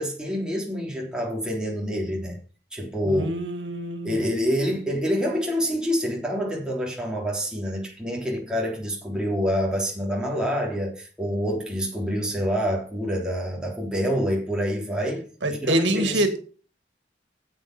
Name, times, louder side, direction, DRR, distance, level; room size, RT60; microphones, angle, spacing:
voice 1, 0.0-2.4 2.7-3.3 4.0-15.2 15.5-16.2, equal, 5° right, 3.4 m, -27 dB
voice 2, 3.0-4.3 15.4-16.5, right 1 dB, 90° right, 2.0 m, -26 dB
9.7 x 8.1 x 6.0 m
head